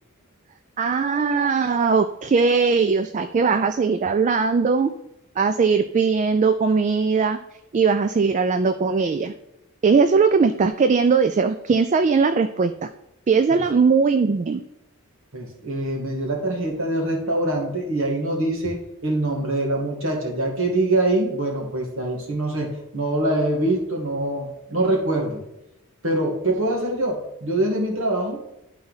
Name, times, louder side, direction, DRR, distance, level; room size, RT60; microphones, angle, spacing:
voice 1, 0.8-4.9 5.4-7.4 7.7-9.3 9.8-12.9 13.3-14.6, right 5 dB, 35° right, 9 dB, 0.3 m, -19 dB
voice 2, 15.3-25.4 26.0-28.4, right 1 dB, 65° right, 0 dB, 1.7 m, -24 dB
11.5 x 4.1 x 4.0 m, 0.86 s
head